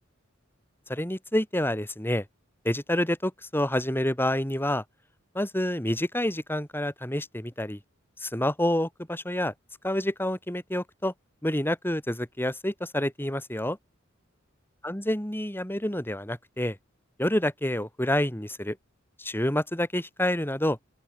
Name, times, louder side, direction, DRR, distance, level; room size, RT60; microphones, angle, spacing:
voice 1, 0.9-2.2 2.6-4.8 5.3-7.8 8.2-9.5 9.8-11.1 11.4-13.8 14.8-16.8 17.2-18.8 19.2-20.8, left 1 dB, 10° left, 4.8 m, -28 dB
open air
head